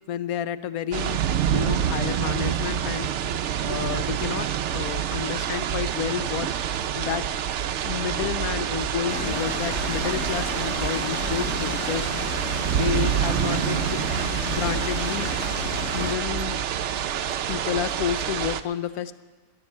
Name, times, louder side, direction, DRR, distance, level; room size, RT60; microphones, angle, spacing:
voice 1, 0.1-1.2 1.5-6.5 6.9-7.3 7.8-12.1 12.7-14.0 14.4-15.5 15.9-16.6 17.5-19.1, left 10 dB, 80° left, 13 dB, 1.1 m, -30 dB
sound 1, 0.9-18.6, right 9 dB, 65° right, 0.8 m, -27 dB
sound 2, 8.7-16.7, right 3 dB, 30° left, 2.1 m, -40 dB
sound 3, 9.1-16.1, left 4 dB, 50° left, 1.6 m, -34 dB
17.5 x 7.1 x 10.0 m, 1.3 s
omnidirectional pair, 1.5 m